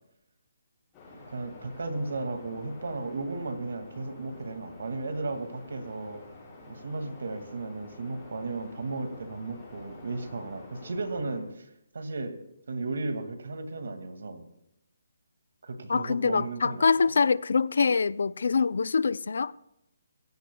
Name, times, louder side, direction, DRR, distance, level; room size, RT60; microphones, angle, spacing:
sound 1, 0.9-11.4, left 3 dB, 15° left, 5.8 m, -49 dB
voice 1, 1.3-6.2 6.7-11.7 11.9-12.3 12.7-14.4 15.6-16.9, right 3 dB, 70° right, 2.2 m, -35 dB
voice 2, 15.9-19.5, left 5 dB, 70° left, 0.5 m, -24 dB
24.5 x 16.0 x 2.3 m
hypercardioid pair, 170°, 0 cm